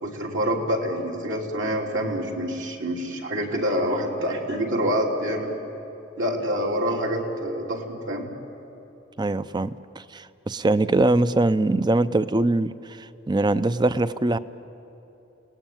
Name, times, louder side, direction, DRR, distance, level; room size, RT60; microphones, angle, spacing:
voice 1, 0.0-5.6 6.2-8.3, equal, 65° right, -1 dB, 3.3 m, -26 dB
voice 2, 9.2-9.8 10.1-14.4, right 2 dB, 20° right, 14 dB, 0.5 m, -22 dB
29.5 x 18.5 x 9.3 m, 3.0 s
head